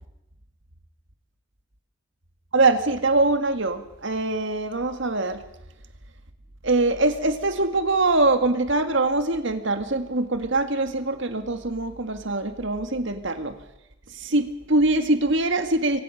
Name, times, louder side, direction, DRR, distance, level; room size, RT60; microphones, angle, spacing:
voice 1, 2.5-5.4 6.6-13.6 14.1-16.0, right 2 dB, 60° right, 8 dB, 1.9 m, -23 dB
23.5 x 17.5 x 6.5 m, 0.92 s
head